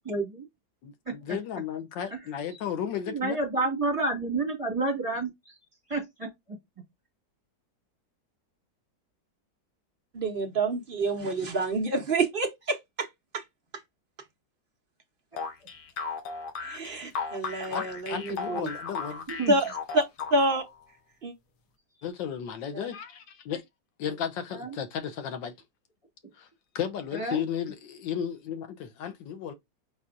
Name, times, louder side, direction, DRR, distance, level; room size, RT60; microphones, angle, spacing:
voice 1, 0.1-0.5 1.1-1.4 2.8-5.3 5.9-6.3 19.3-19.6 24.5-24.7 27.1-27.4, right 2 dB, 20° right, 1.7 m, -30 dB
voice 2, 0.8-3.4 17.7-19.3 22.0-23.6 24.0-25.5 26.4-26.5 26.7-29.5, left 8 dB, 85° left, 1.5 m, -34 dB
voice 3, 10.1-13.1 13.3-13.4 16.6-18.7 19.5-20.1 20.3-20.6 21.2-21.3 22.7-22.9, right 2 dB, 55° right, 0.6 m, -28 dB
sound 1, 15.4-20.7, left 5 dB, 70° left, 1.5 m, -36 dB
4.7 x 4.2 x 2.4 m
omnidirectional pair, 1.9 m